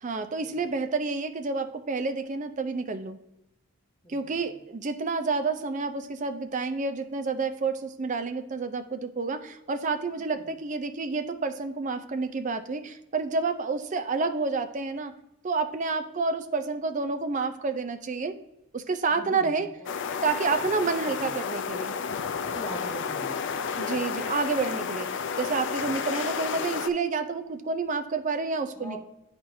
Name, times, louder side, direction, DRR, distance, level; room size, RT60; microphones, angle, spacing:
voice 1, 0.0-3.2 4.1-15.2 15.4-18.4 18.7-19.7 20.2-21.9 23.8-29.0, right 4 dB, 35° right, 9 dB, 0.4 m, -29 dB
voice 2, 4.0-4.4 10.2-10.5 19.1-19.9 21.0-21.3 22.4-23.4 28.7-29.0, right 1 dB, 15° left, -2 dB, 1.3 m, -43 dB
sound 1, 19.9-26.9, left 6 dB, 55° left, 0.4 m, -31 dB
10.0 x 4.3 x 2.7 m, 0.89 s
head